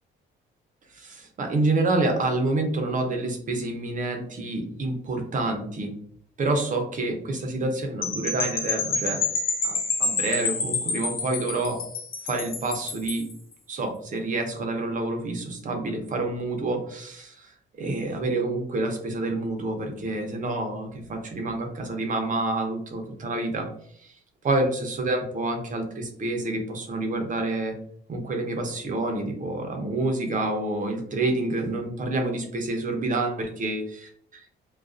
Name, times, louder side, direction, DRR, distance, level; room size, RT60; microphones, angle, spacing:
voice 1, 0.9-5.9 6.4-9.2 9.6-11.8 12.2-13.3 13.7-17.5 17.8-23.7 24.0-24.1 24.4-27.7 28.1-34.5, right 2 dB, 40° right, 3 dB, 0.6 m, -28 dB
sound 1, 8.0-13.3, left 4 dB, 50° left, 0.5 m, -28 dB
2.3 x 2.2 x 2.4 m, 0.63 s
cardioid pair, 90°, 20 cm